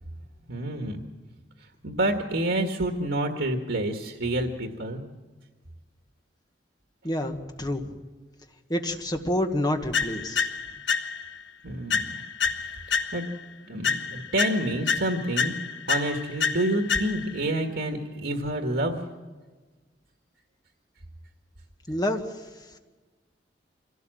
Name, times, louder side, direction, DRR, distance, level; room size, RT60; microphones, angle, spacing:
voice 1, 0.5-1.0 1.8-5.0 11.6-12.2 12.9-13.2 13.7-15.5 15.9-19.0, right 1 dB, 85° right, 4 dB, 1.8 m, -28 dB
voice 2, 7.0-8.0 8.7-10.5 21.9-22.3, left 1 dB, 20° left, 5 dB, 1.7 m, -28 dB
sound 1, 9.9-11.4 11.9-13.4 13.8-17.4, left 5 dB, 75° left, 1.3 m, -29 dB
24.5 x 16.5 x 7.8 m, 1.3 s
head